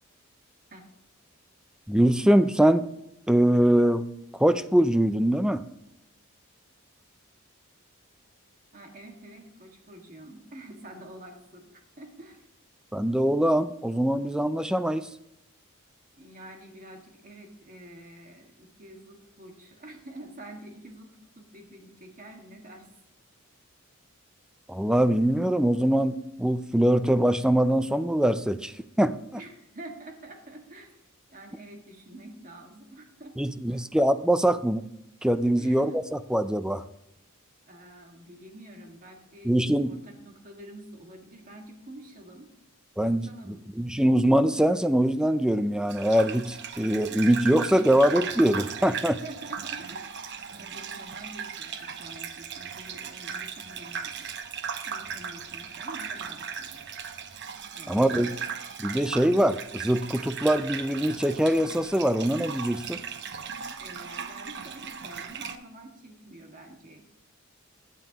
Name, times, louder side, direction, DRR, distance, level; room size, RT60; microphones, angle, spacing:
voice 1, 1.9-2.9 3.3-4.1 4.3-5.6 12.9-15.1 24.7-29.4 33.4-34.9 35.2-35.9 36.3-36.8 39.4-39.9 43.0-49.2 57.9-58.3 58.8-63.0, right 1 dB, 5° right, 12 dB, 0.4 m, -23 dB
voice 2, 8.7-12.4 16.2-22.9 29.4-31.0 31.3-33.8 35.6-36.0 37.7-42.5 43.0-43.7 48.9-54.3 54.8-56.8 57.7-58.3 63.8-67.1, right 1 dB, 40° right, 2 dB, 1.8 m, -47 dB
Gurgling / Bathtub (filling or washing), 45.9-65.6, right 6 dB, 55° right, 0.8 m, -37 dB
15.5 x 9.4 x 2.9 m, 0.82 s
head